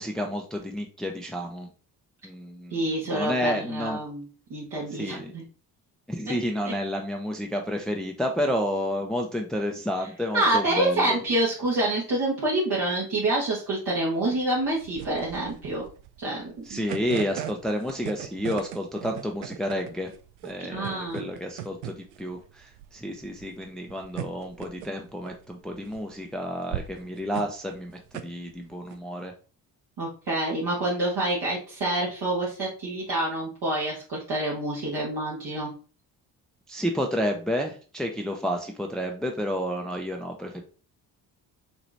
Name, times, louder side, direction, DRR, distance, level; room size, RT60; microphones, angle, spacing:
voice 1, 0.0-1.7 2.2-4.0 5.0-5.3 6.1-11.2 16.7-20.1 20.4-29.3 36.7-40.6, equal, ahead, 3 dB, 0.7 m, -30 dB
voice 2, 2.7-4.2 4.5-5.4 6.3-6.4 6.6-6.7 10.3-15.8 16.2-16.9 20.6-21.3 30.0-35.7, right 1 dB, 50° right, -5 dB, 1.6 m, -27 dB
sound 1, 14.2-29.0, right 12 dB, 75° right, 0.6 m, -39 dB
5.9 x 3.0 x 2.7 m, 0.38 s
hypercardioid pair, 40°, 50 cm